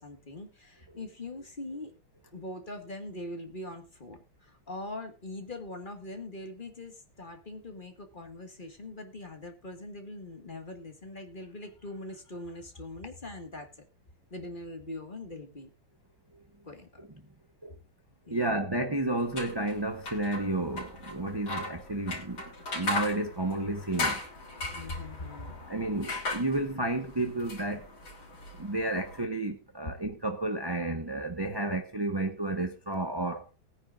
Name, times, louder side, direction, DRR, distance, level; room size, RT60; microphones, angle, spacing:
voice 1, 0.0-1.9 2.3-13.7 14.3-15.7 16.6-17.1 18.3-18.6 24.7-25.6, left 2 dB, 25° left, 1.8 m, -42 dB
voice 2, 18.3-22.4 22.7-24.2 25.7-27.9 28.6-33.5, right 2 dB, 20° right, 0.7 m, -31 dB
sound 1, 19.2-29.2, left 2 dB, 75° left, 4.1 m, -38 dB
20.0 x 9.6 x 2.5 m
omnidirectional pair, 2.2 m